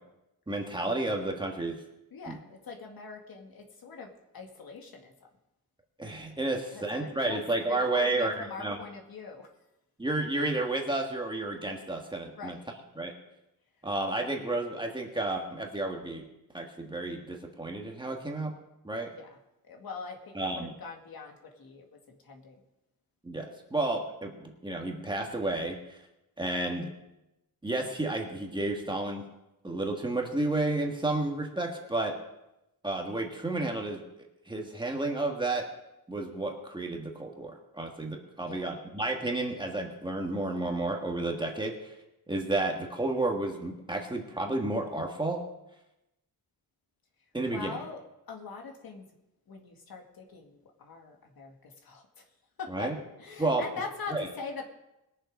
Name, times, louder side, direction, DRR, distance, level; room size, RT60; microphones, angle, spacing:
voice 1, 0.5-1.8 2.3-2.4 6.0-8.8 10.0-12.6 12.9-13.1 13.8-16.3 16.5-18.5 18.8-19.1 20.3-20.7 23.2-26.0 26.4-26.9 27.6-29.2 29.6-32.2 32.8-34.0 34.5-35.7 36.1-41.9 42.3-45.4 47.3-47.8 52.7-52.9 53.4-53.6 54.1-54.3, right 2 dB, 10° right, 1 dB, 1.5 m, -31 dB
voice 2, 2.1-5.1 6.7-9.5 12.4-12.6 19.1-19.3 19.6-22.6 38.4-38.6 47.5-48.0 48.3-49.0 49.5-52.2 52.6-52.9 53.2-54.6, left 4 dB, 65° left, 2 dB, 2.0 m, -42 dB
21.0 x 7.1 x 5.3 m, 0.91 s
wide cardioid pair, 165°, 38 cm